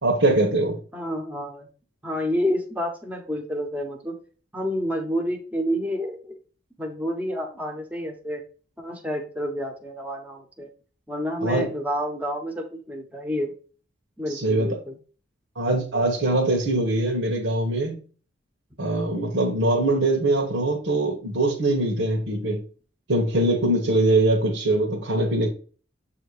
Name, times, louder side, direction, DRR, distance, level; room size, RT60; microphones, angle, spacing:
voice 1, 0.0-0.8 11.4-11.7 14.3-14.8 15.6-18.0 18.8-22.6 23.1-25.5, right 2 dB, 85° right, 1.2 m, -22 dB
voice 2, 0.9-1.7 2.0-4.2 4.5-6.4 6.8-8.4 8.8-10.7 11.1-13.5 14.2-15.0, equal, 10° right, 0.9 m, -29 dB
7.5 x 2.8 x 4.8 m
head